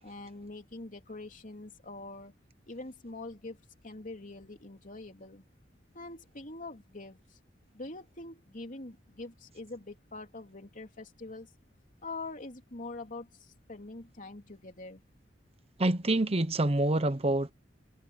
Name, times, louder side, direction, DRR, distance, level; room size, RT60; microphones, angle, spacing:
voice 1, 0.0-2.3 2.7-3.6 3.8-5.4 5.9-7.4 7.7-11.5 12.0-15.0, left 2 dB, 45° left, 3.3 m, -44 dB
voice 2, 15.8-17.5, right 1 dB, 35° right, 0.9 m, -26 dB
head